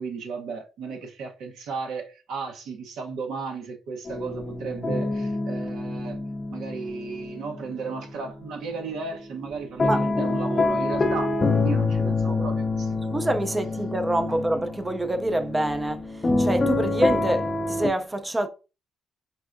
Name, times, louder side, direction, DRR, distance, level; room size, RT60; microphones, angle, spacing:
voice 1, 0.0-6.2 6.5-11.3 11.6-13.2, right 4 dB, 85° right, 0.9 m, -34 dB
sound 1, 4.1-8.1 8.4-17.9, left 3 dB, 30° left, 0.5 m, -26 dB
voice 2, 13.1-18.5, right 1 dB, 15° right, 0.4 m, -26 dB
4.4 x 3.3 x 2.5 m
cardioid pair, 90°, 0 cm